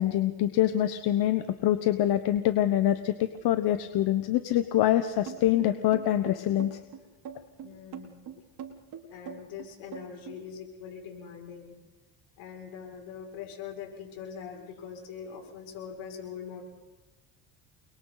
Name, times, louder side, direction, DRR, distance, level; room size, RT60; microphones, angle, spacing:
voice 1, 0.0-6.8, left 12 dB, 70° left, 10 dB, 1.3 m, -25 dB
sound 1, 5.3-10.4, right 8 dB, 70° right, 3.7 m, -42 dB
voice 2, 7.6-8.2 9.1-11.8 12.4-16.6, left 7 dB, 90° left, 1 dB, 6.3 m, -42 dB
30.0 x 22.5 x 4.1 m, 1.2 s
cardioid pair, 115°, 40 cm